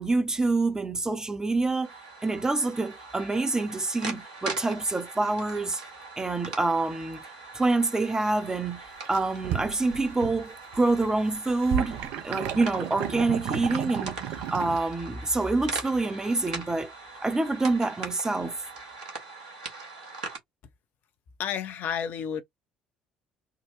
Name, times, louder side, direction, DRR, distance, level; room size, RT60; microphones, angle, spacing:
voice 1, 0.0-1.9 2.2-5.8 6.2-7.2 7.5-12.0 12.2-16.9 17.2-18.6, right 3 dB, 15° right, 0.8 m, -26 dB
sound 1, 1.8-20.4, right 3 dB, 75° right, 1.3 m, -41 dB
sound 2, 8.9-10.5 10.7-14.8, right 10 dB, 60° right, 0.7 m, -33 dB
voice 2, 21.4-22.4, left 8 dB, 50° left, 0.8 m, -31 dB
3.7 x 2.2 x 3.0 m
figure-of-eight pair, 55°, 4 cm